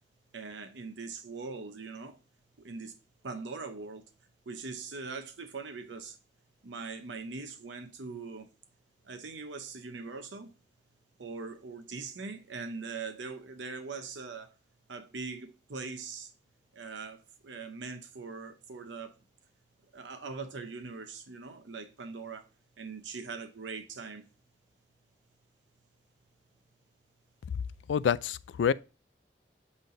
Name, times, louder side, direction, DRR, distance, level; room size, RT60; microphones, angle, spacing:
voice 1, 0.3-2.2 2.6-3.0 3.2-4.0 4.5-6.2 6.6-8.5 9.0-10.5 11.2-14.5 14.9-16.3 16.7-19.1 19.9-22.5 22.8-24.3, right 4 dB, 90° right, 0.7 m, -41 dB
voice 2, 27.9-28.7, left 7 dB, 90° left, 0.3 m, -27 dB
8.3 x 3.3 x 3.9 m
head